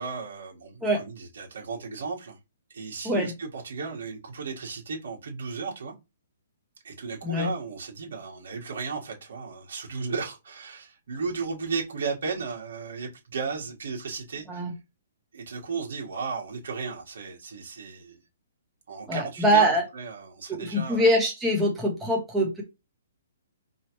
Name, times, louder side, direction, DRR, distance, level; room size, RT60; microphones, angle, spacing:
voice 1, 0.0-2.4 2.7-5.9 6.8-14.6 15.3-18.2 18.9-21.0, right 4 dB, 65° right, 1.6 m, -35 dB
voice 2, 19.1-19.8 20.5-22.6, right 1 dB, 5° right, 1.1 m, -23 dB
4.9 x 3.1 x 3.1 m
hypercardioid pair, 170°, 0 cm